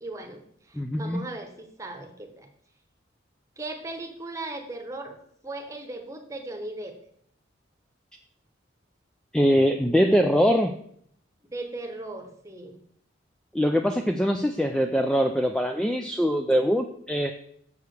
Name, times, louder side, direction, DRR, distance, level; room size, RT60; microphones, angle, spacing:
voice 1, 0.0-2.5 3.6-5.2 5.4-7.0 11.5-12.8, right 2 dB, 15° right, 4 dB, 1.0 m, -37 dB
voice 2, 0.8-1.2 9.3-10.8 13.5-17.3, equal, 5° left, 5 dB, 0.3 m, -23 dB
6.9 x 4.9 x 6.4 m, 0.66 s
head